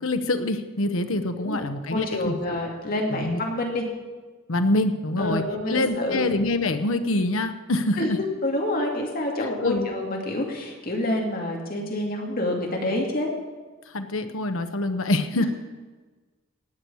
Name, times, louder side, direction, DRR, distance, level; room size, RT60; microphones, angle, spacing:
voice 1, 0.0-2.6 3.1-3.4 4.5-8.2 9.6-9.9 13.9-15.4, left 2 dB, 85° left, 8 dB, 1.0 m, -25 dB
voice 2, 1.9-3.8 5.2-6.2 8.0-8.1 8.4-13.3, left 1 dB, 45° left, 1 dB, 2.6 m, -27 dB
18.0 x 6.4 x 8.4 m, 1.3 s
head